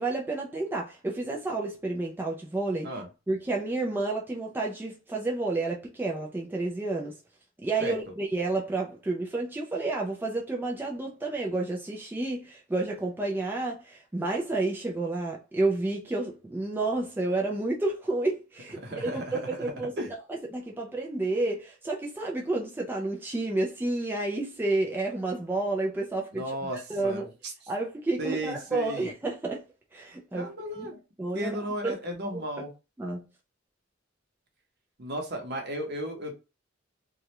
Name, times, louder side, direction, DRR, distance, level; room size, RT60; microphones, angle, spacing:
voice 1, 0.0-2.9 3.3-7.2 7.6-19.9 20.3-27.3 27.7-29.6 29.9-30.9 31.2-31.6 31.8-31.9 32.3-32.4 33.0-33.3, right 2 dB, 10° right, 0.3 m, -30 dB
voice 2, 18.8-19.6 20.0-20.1 26.3-27.5 28.2-29.1 30.3-31.0 31.3-32.7 35.0-36.3, right 1 dB, 55° right, 0.8 m, -34 dB
2.3 x 2.1 x 2.8 m
head